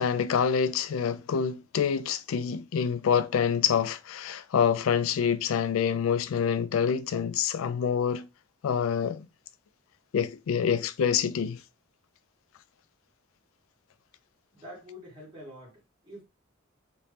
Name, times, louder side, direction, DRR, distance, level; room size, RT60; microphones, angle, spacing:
voice 1, 0.0-8.2 8.6-9.3 10.1-11.6, left 7 dB, 75° left, 0.3 m, -26 dB
voice 2, 14.5-16.2, equal, 20° right, 1.6 m, -46 dB
3.0 x 2.7 x 3.3 m
head